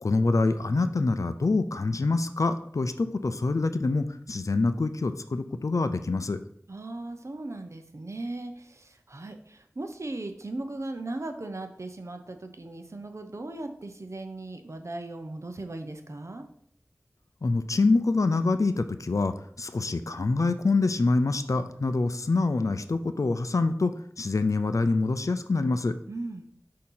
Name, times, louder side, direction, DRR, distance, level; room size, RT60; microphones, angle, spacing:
voice 1, 0.0-6.4 17.4-25.9, left 3 dB, 75° left, 10 dB, 0.5 m, -26 dB
voice 2, 6.7-16.5 26.1-26.5, right 2 dB, 60° right, 6 dB, 0.7 m, -38 dB
6.4 x 2.8 x 5.6 m, 0.67 s
wide cardioid pair, 45°, 6 cm